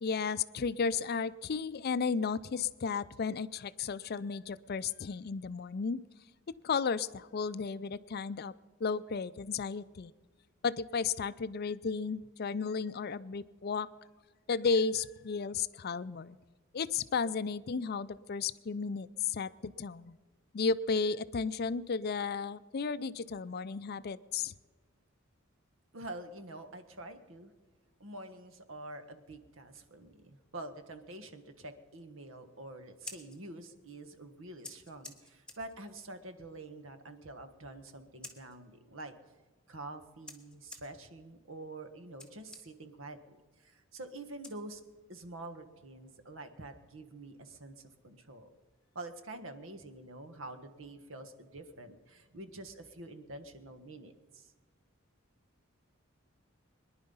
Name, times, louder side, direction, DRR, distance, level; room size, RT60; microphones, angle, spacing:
voice 1, 0.0-6.0 6.6-8.5 8.8-10.1 10.6-13.9 14.5-16.4 16.7-20.2 20.5-24.5, left 5 dB, 50° left, 15 dB, 0.5 m, -33 dB
voice 2, 25.9-27.5 28.0-39.1 39.7-44.8 45.1-47.7 48.0-48.5 48.9-54.5, right 2 dB, 70° right, 9 dB, 1.3 m, -47 dB
Scissors, 32.8-45.2, left 3 dB, 5° left, 1.5 m, -55 dB
23.0 x 10.5 x 5.5 m, 1.4 s
head